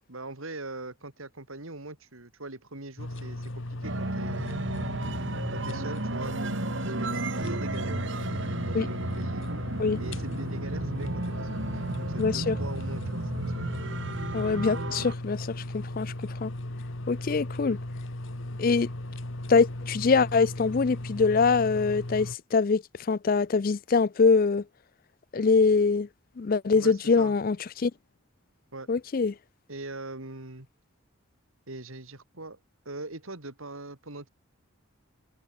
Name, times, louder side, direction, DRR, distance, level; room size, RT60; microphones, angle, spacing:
voice 1, 0.0-4.7 5.5-9.6 10.0-13.7 26.7-27.3 28.7-28.9 29.7-30.7 31.7-32.6 32.8-34.3, right 2 dB, 75° right, 3.2 m, -42 dB
sound 1, 3.0-22.4, left 1 dB, 65° left, 1.9 m, -37 dB
sound 2, 3.8-15.1, right 2 dB, 60° right, 1.6 m, -33 dB
voice 2, 12.2-12.6 14.3-16.1 16.4-16.5 17.1-17.8 18.6-18.9 19.5-22.8 23.1-24.6 25.3-26.1 26.4-27.9 28.9-29.3, left 4 dB, 40° left, 0.4 m, -24 dB
open air
head